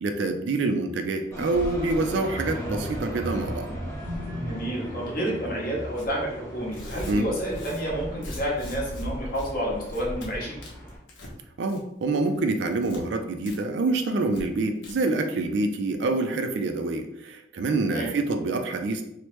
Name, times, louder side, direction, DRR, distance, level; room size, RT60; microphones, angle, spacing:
voice 1, 0.0-3.7 7.1-7.3 11.6-19.0, right 3 dB, 65° right, 6 dB, 0.3 m, -26 dB
sound 1, 1.3-11.0, equal, 15° left, 0.6 m, -38 dB
sound 2, 2.2-7.9 8.3-8.6 8.9-9.0, equal, 85° right, 0.8 m, -38 dB
voice 2, 4.4-10.6 17.8-18.1, right 1 dB, 50° left, -4 dB, 0.9 m, -30 dB
Tearing, 5.9-6.1 6.6-9.0 9.3-9.5 9.8-10.3 10.6-11.3 11.6-12.0 12.3-13.0 13.4-13.6 13.8-13.9 14.3-14.4 14.7-14.9, left 2 dB, 85° left, 0.8 m, -45 dB
3.1 x 2.1 x 3.0 m, 0.81 s
head